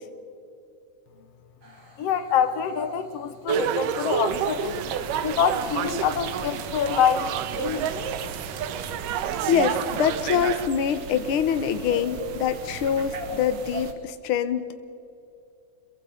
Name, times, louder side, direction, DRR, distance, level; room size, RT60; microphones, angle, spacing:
sound 1, 1.6-14.1, equal, 30° right, 4.2 m, -49 dB
voice 1, 2.0-4.8 5.2-7.9, left 7 dB, 60° left, 10 dB, 1.7 m, -25 dB
sound 2, 3.5-10.7, right 8 dB, 80° right, 2.5 m, -29 dB
sound 3, 4.3-13.9, right 6 dB, 60° right, 1.7 m, -39 dB
voice 2, 9.5-14.8, left 8 dB, 90° left, 9 dB, 1.1 m, -25 dB
28.0 x 22.5 x 5.1 m, 2.7 s
omnidirectional pair, 3.9 m